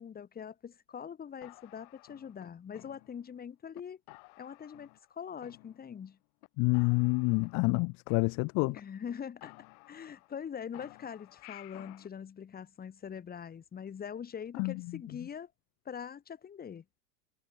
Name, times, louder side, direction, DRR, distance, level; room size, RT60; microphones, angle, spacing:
voice 1, 0.0-4.0 4.4-6.2 8.6-9.6 9.9-15.5 15.8-16.8, left 7 dB, 20° left, 1.5 m, -43 dB
sound 1, 1.4-3.4 3.7-3.8 4.1-5.1 5.4-6.1 6.4-6.5 6.7-8.8 9.1-9.2 9.4-10.4 10.7-12.1, left 40 dB or more, 55° left, 6.1 m, -55 dB
voice 2, 6.6-8.8 14.6-14.7, left 28 dB, 35° left, 0.5 m, -27 dB
hypercardioid pair, 115°, 49 cm